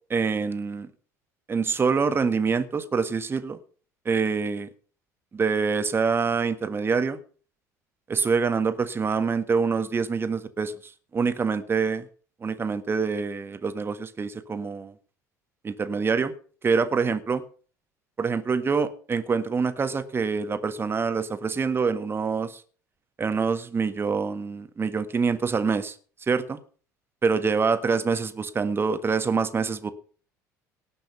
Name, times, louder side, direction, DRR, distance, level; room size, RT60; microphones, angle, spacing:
voice 1, 0.1-0.9 1.5-3.6 4.0-4.7 5.3-7.2 8.1-12.1 12.4-14.9 15.6-16.3 16.6-17.4 18.2-22.6 23.2-25.9 26.3-26.6 27.2-29.9, right 5 dB, 25° right, 1.6 m, -25 dB
18.5 x 6.2 x 6.9 m
figure-of-eight pair, 60°, 10 cm